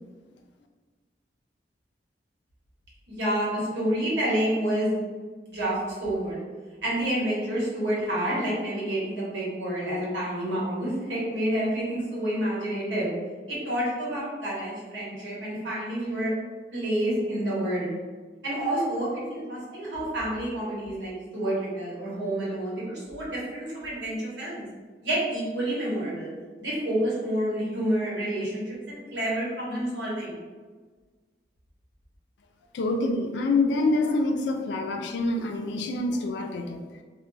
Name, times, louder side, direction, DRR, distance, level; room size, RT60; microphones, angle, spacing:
voice 1, 3.1-5.0 5.5-6.4 6.8-13.1 13.5-16.3 16.7-17.9 18.4-24.7 25.0-26.3 26.6-30.4, right 1 dB, 85° right, -6 dB, 1.0 m, -29 dB
voice 2, 32.7-37.0, left 2 dB, 80° left, 4 dB, 0.3 m, -26 dB
2.2 x 2.1 x 3.1 m, 1.4 s
head